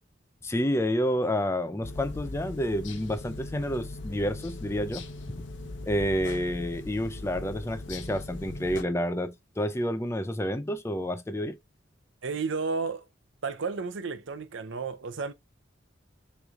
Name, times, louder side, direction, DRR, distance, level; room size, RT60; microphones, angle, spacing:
voice 1, 0.4-5.1 5.3-5.4 5.9-11.6, equal, 15° left, 0.4 m, -29 dB
sound 1, 1.8-8.8, left 2 dB, 75° left, 0.8 m, -40 dB
voice 2, 12.2-13.0 13.4-15.3, right 4 dB, 75° right, 0.6 m, -32 dB
6.4 x 3.2 x 2.4 m
head